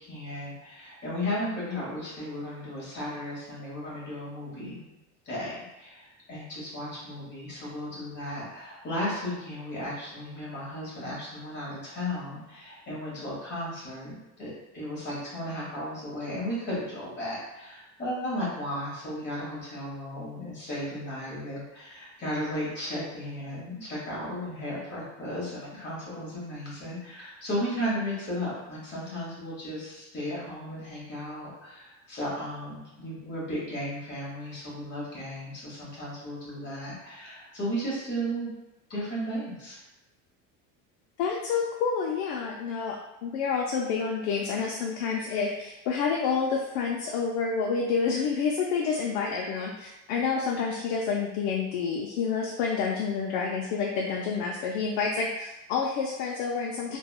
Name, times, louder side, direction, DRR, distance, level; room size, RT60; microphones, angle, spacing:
voice 1, 0.1-4.9 5.2-38.5 38.9-39.8, equal, 30° left, -7 dB, 1.3 m, -35 dB
voice 2, 41.2-57.0, left 5 dB, 75° left, 0 dB, 0.5 m, -29 dB
3.4 x 2.2 x 2.3 m, 0.95 s
cardioid pair, 155°, 37 cm